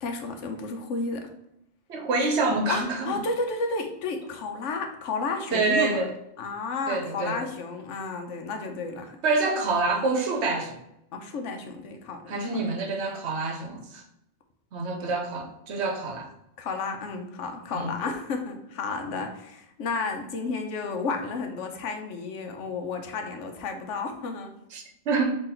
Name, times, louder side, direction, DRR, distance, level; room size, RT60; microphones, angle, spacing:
voice 1, 0.0-1.3 2.7-6.0 6.4-9.2 11.1-12.2 12.5-12.6 16.6-24.5, left 4 dB, 80° left, 4 dB, 1.0 m, -32 dB
voice 2, 1.9-3.2 5.5-6.1 6.9-7.5 9.2-10.8 12.3-14.0 14.7-16.3 17.7-17.9 24.7-25.4, right 3 dB, 70° right, 3 dB, 1.0 m, -27 dB
3.9 x 3.0 x 4.3 m, 0.83 s
omnidirectional pair, 1.2 m